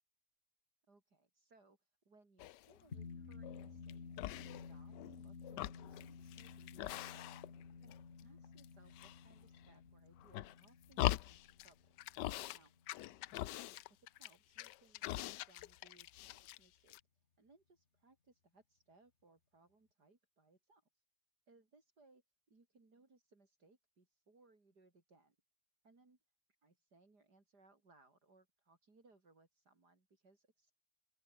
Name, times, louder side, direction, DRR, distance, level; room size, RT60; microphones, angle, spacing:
voice 1, 0.9-4.0 4.4-7.4 7.8-12.0 12.5-12.7 13.3-17.0 17.4-20.8 21.5-25.4 25.8-26.2 26.6-30.8, right 3 dB, 70° right, 5.0 m, -69 dB
sound 1, 2.4-2.8 3.3-3.9 4.2-5.2 5.4-7.6 7.9-8.7 8.9-9.7 10.2-11.7 12.0-12.6 12.9-16.6 16.9-17.0, left 15 dB, 90° left, 1.3 m, -42 dB
sound 2, 2.9-13.6, left 5 dB, 40° left, 1.9 m, -54 dB
open air
omnidirectional pair, 1.8 m